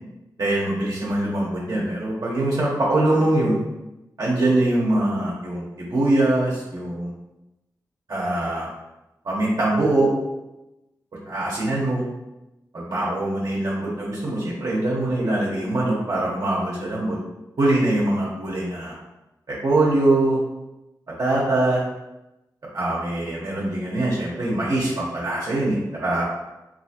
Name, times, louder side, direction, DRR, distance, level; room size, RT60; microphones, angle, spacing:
voice 1, 0.4-3.6 4.2-7.1 8.1-8.7 9.2-10.1 11.3-12.1 12.7-17.2 17.6-18.9 19.5-20.4 21.2-21.8 22.7-26.2, right 2 dB, 60° right, -6 dB, 1.0 m, -23 dB
3.3 x 2.7 x 2.8 m, 0.96 s
wide cardioid pair, 80°, 7 cm